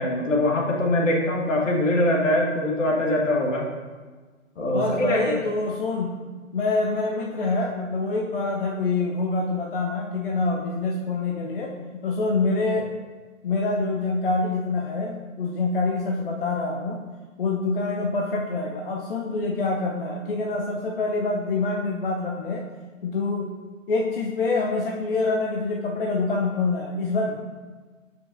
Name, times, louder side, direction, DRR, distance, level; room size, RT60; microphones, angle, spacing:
voice 1, 0.0-3.7 4.6-5.4, left 1 dB, 65° left, -1 dB, 1.5 m, -23 dB
voice 2, 4.7-6.1 6.5-12.9 13.4-17.0 17.4-22.6 23.0-23.5 23.9-27.3, left 3 dB, 45° left, 0 dB, 0.6 m, -26 dB
7.2 x 5.2 x 2.6 m, 1.4 s
figure-of-eight pair, 140°, 41 cm